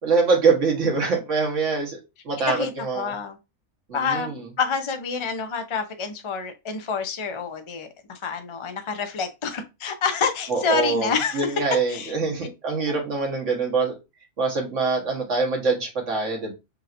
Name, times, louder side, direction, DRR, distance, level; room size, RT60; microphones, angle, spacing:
voice 1, 0.0-2.0 2.2-3.1 3.9-4.5 10.5-14.0 14.4-16.5, right 4 dB, 60° right, 1 dB, 1.7 m, -24 dB
voice 2, 2.5-3.4 3.9-11.5 11.9-12.5, left 5 dB, 40° left, 6 dB, 0.4 m, -28 dB
5.5 x 2.7 x 2.6 m, 0.25 s
omnidirectional pair, 1.4 m